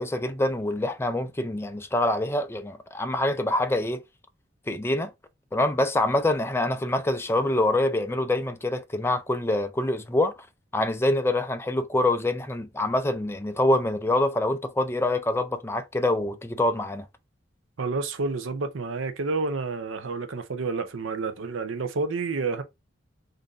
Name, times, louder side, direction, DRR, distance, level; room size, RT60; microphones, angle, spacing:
voice 1, 0.0-4.0 4.7-5.1 5.5-10.3 10.7-17.1, left 1 dB, 15° left, 0.4 m, -25 dB
voice 2, 17.8-22.6, right 3 dB, 85° right, 0.6 m, -29 dB
3.9 x 2.6 x 3.5 m
head